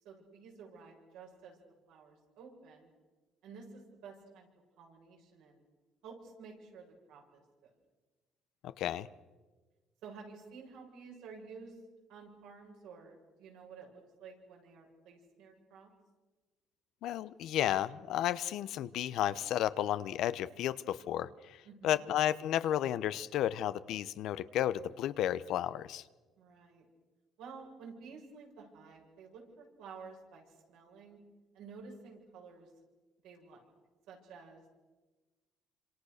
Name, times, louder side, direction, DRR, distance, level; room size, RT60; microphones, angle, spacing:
voice 1, 0.0-1.6 1.9-2.9 3.4-4.5 4.8-5.6 6.0-7.7 10.0-11.8 12.1-15.9 21.6-22.0 26.4-26.8 27.4-31.2 31.5-32.7 33.2-33.6 34.1-34.7, right 5 dB, 85° right, 0 dB, 7.5 m, -52 dB
voice 2, 8.6-9.1 17.0-21.6 21.8-26.0, left 12 dB, 75° left, 15 dB, 0.9 m, -33 dB
27.5 x 26.5 x 6.7 m, 1.3 s
cardioid pair, 90°, 0 cm